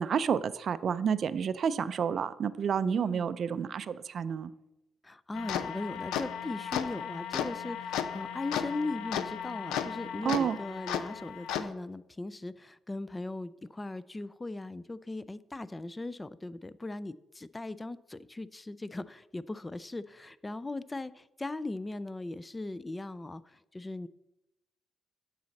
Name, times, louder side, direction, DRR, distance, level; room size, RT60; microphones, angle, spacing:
voice 1, 0.0-4.5 10.2-10.6, right 7 dB, 55° right, 13 dB, 0.4 m, -30 dB
voice 2, 2.8-3.3 5.0-23.4 23.7-24.1, left 2 dB, 20° left, 17 dB, 0.4 m, -39 dB
sound 1, 5.3-11.7, left 8 dB, 90° left, 0.5 m, -35 dB
9.4 x 4.1 x 7.0 m, 0.93 s
cardioid pair, 90°, 0 cm